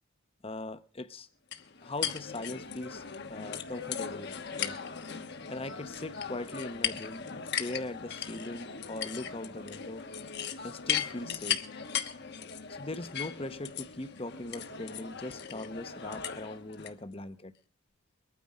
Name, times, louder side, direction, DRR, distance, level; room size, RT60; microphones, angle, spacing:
voice 1, 0.4-1.3 1.8-3.0 3.3-4.8 5.5-7.3 7.6-10.1 10.6-11.6 12.7-17.5, left 2 dB, 25° left, 0.9 m, -40 dB
sound 1, 1.5-16.9, left 8 dB, 50° left, 1.2 m, -37 dB
23.0 x 9.5 x 4.9 m
head